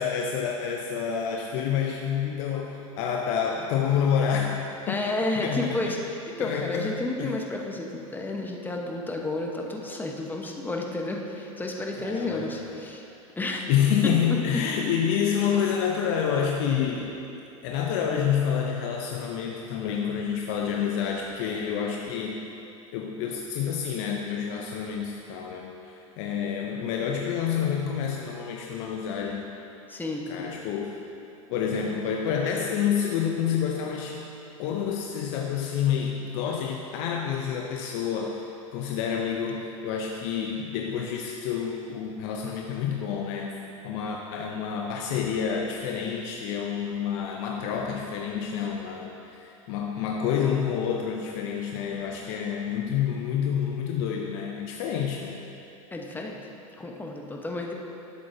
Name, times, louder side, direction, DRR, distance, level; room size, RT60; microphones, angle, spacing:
voice 1, 0.0-4.6 4.9-5.0 5.3-6.0 6.4-7.4 12.0-12.7 13.7-17.2 17.6-22.4 22.9-29.5 30.3-31.1 31.5-34.2 34.6-38.4 38.7-43.6 43.8-55.4, left 7 dB, 60° left, 1 dB, 0.7 m, -28 dB
voice 2, 4.9-13.0 13.4-13.7 14.3-14.4 29.9-30.2 55.9-56.4 56.8-57.7, left 2 dB, 10° left, 0 dB, 1.0 m, -31 dB
11.5 x 7.6 x 2.7 m, 2.8 s
hypercardioid pair, 95°, 17 cm